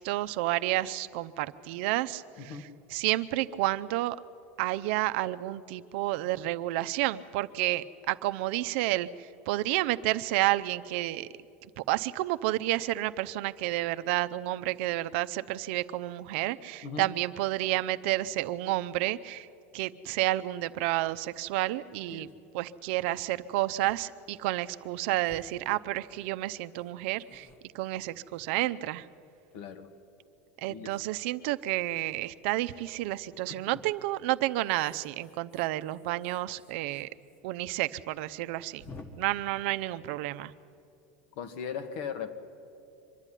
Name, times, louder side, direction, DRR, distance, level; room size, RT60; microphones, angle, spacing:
voice 1, 0.0-2.6 2.9-4.2 4.6-11.3 11.8-19.5 19.7-22.3 22.5-27.5 27.7-29.1 30.6-37.1 37.4-38.8 39.2-40.5, right 16 dB, 70° right, 12 dB, 0.6 m, -30 dB
sound 1, 21.0-21.2 21.6-21.7 21.9-22.3 23.2-23.4 23.8-24.0 24.3-24.4 25.2-26.2 26.7-29.0 29.5-30.3 31.9-32.2 33.5-33.8 34.6-37.4 37.7-37.8 38.0-38.1 38.8-39.1, left 3 dB, 30° left, 1.6 m, -54 dB
voice 2, 29.5-29.9 30.7-30.9 33.5-33.8 41.3-42.3, left 7 dB, 65° left, 9 dB, 1.6 m, -38 dB
24.5 x 10.5 x 10.0 m, 2.5 s
supercardioid pair, 135°, 7 cm